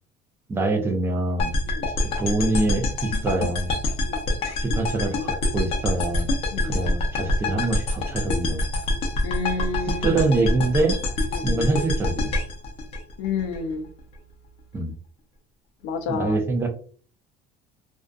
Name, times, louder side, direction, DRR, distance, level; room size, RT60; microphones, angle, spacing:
voice 1, 0.5-1.5 2.0-3.8 4.6-6.3 6.6-8.6 9.9-11.0 11.4-12.3 14.7-14.9 16.1-16.7, right 2 dB, 15° right, 3 dB, 0.4 m, -25 dB
sound 1, 1.4-13.6, left 2 dB, 35° left, 0.6 m, -26 dB
voice 2, 9.2-10.1 11.4-11.6 13.2-13.8 15.8-16.4, left 4 dB, 80° left, 4 dB, 0.5 m, -29 dB
2.5 x 2.4 x 2.2 m, 0.42 s
cardioid pair, 165°, 17 cm